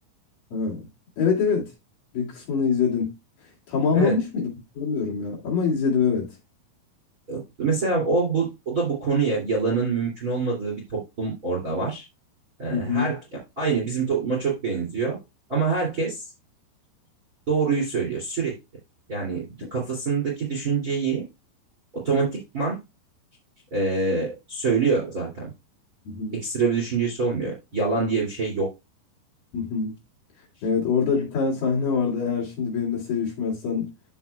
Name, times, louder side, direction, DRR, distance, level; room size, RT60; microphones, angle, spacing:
voice 1, 0.5-0.9 1.2-1.7 2.1-3.1 3.7-6.3 12.7-13.1 26.1-26.4 29.5-29.9 30.6-33.9, left 5 dB, 55° left, 3.9 m, -24 dB
voice 2, 7.3-12.1 12.6-13.2 13.6-15.2 15.5-16.3 17.5-18.6 19.1-21.2 21.9-22.8 23.7-25.5 26.3-28.7, right 4 dB, 25° right, 2.2 m, -25 dB
14.0 x 5.0 x 2.3 m
omnidirectional pair, 5.1 m